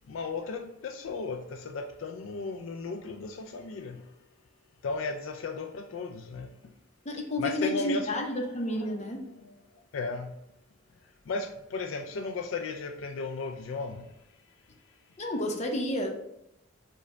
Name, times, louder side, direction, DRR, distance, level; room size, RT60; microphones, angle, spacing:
voice 1, 0.1-4.0 4.8-6.5 7.4-9.5 9.9-10.3 11.3-14.0, left 3 dB, 75° left, 5 dB, 0.4 m, -35 dB
voice 2, 7.0-9.2 15.2-16.1, left 1 dB, 35° left, 2 dB, 0.7 m, -30 dB
5.2 x 2.2 x 3.8 m, 0.80 s
head